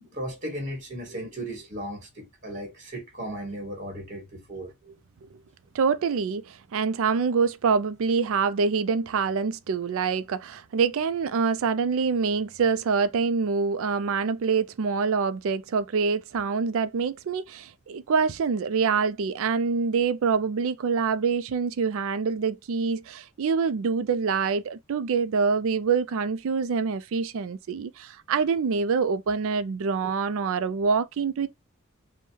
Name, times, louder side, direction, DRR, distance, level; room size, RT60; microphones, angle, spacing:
voice 1, 0.0-5.0 30.0-30.2, right 1 dB, 35° right, 1.5 m, -36 dB
voice 2, 5.7-31.5, right 5 dB, 65° right, 0.4 m, -25 dB
5.3 x 2.1 x 3.1 m
head